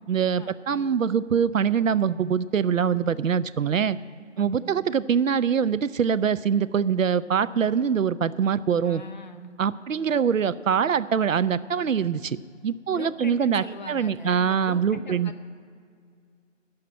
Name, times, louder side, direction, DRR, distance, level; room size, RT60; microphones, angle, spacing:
voice 1, 0.1-4.0 4.4-9.0 9.6-12.4 12.6-15.3, right 7 dB, 85° right, 15 dB, 0.5 m, -24 dB
voice 2, 4.4-4.8 8.8-9.5 12.9-15.4, left 2 dB, 35° left, 5 dB, 0.6 m, -41 dB
11.5 x 5.8 x 8.6 m, 2.2 s
figure-of-eight pair, 155°, 38 cm